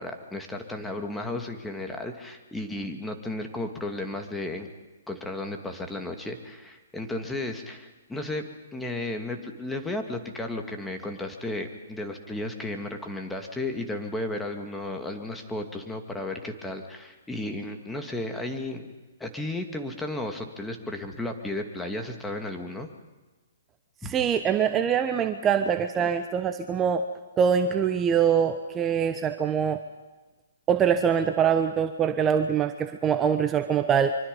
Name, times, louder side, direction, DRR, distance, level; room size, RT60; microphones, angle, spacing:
voice 1, 0.0-4.7 5.1-18.9 19.2-22.9 24.0-24.1, left 2 dB, 5° left, 4 dB, 2.3 m, -34 dB
voice 2, 24.0-27.0 27.4-29.8 30.7-34.2, right 7 dB, 20° right, 8 dB, 1.0 m, -24 dB
25.0 x 24.5 x 5.5 m, 1.2 s
hypercardioid pair, 135°, 0 cm